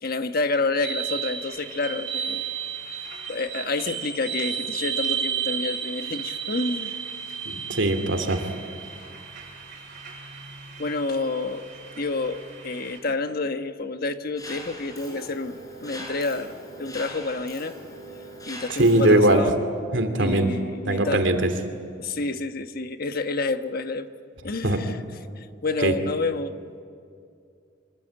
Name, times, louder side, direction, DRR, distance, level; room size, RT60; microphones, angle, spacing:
voice 1, 0.0-2.4 2.9-3.0 3.3-7.0 10.8-11.7 12.0-17.8 18.5-19.6 20.2-21.3 22.0-24.1 24.4-25.0 25.4-26.6, left 3 dB, 55° left, 8 dB, 1.3 m, -29 dB
sound 1, 0.8-13.0, right 7 dB, 45° right, 7.8 m, -33 dB
voice 2, 7.5-8.4 18.8-19.4 19.9-20.5 20.9-21.5 24.6-24.8 25.8-25.9, right 1 dB, 85° right, 7 dB, 2.8 m, -20 dB
Mechanisms, 14.4-19.4, equal, 20° left, 5.9 m, -41 dB
25.5 x 24.0 x 8.9 m, 2.4 s
head